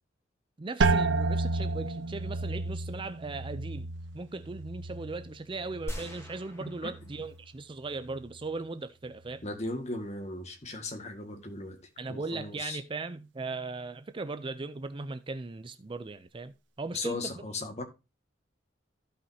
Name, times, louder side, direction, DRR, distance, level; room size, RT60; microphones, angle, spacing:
voice 1, 0.6-9.4 12.0-17.3, right 3 dB, 25° right, 0.4 m, -38 dB
sound 1, 0.8-6.4 6.8-7.5 8.0-8.4, right 3 dB, 70° right, 0.7 m, -32 dB
sound 2, 5.9-7.6 8.1-8.2, equal, 15° left, 1.6 m, -42 dB
voice 2, 6.6-6.9 9.4-11.8 12.1-12.8 16.9-17.8, left 2 dB, 35° left, 1.8 m, -37 dB
15.5 x 5.5 x 2.8 m
head